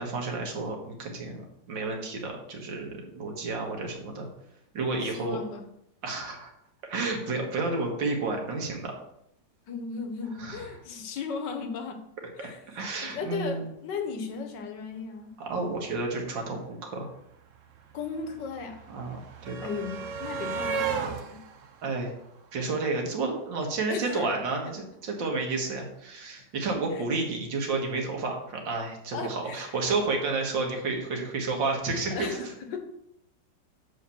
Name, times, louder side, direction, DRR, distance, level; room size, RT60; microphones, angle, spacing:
voice 1, 0.0-4.3 4.7-5.4 6.0-6.5 6.9-8.9 10.4-10.7 12.4-13.7 15.4-17.1 18.9-19.6 21.8-22.1 22.5-32.3, right 3 dB, 90° right, 1 dB, 2.2 m, -31 dB
voice 2, 5.0-5.7 9.7-12.0 12.4-12.6 13.0-15.3 17.9-18.8 19.6-21.4 23.9-24.4 26.9-27.0 29.1-29.8 32.1-32.8, left 5 dB, 75° left, 6 dB, 1.7 m, -36 dB
sound 1, 16.7-16.8 16.9-23.1 24.3-24.4 24.7-24.8, right 5 dB, 60° right, 0.9 m, -36 dB
6.6 x 5.0 x 7.0 m, 0.78 s
omnidirectional pair, 2.0 m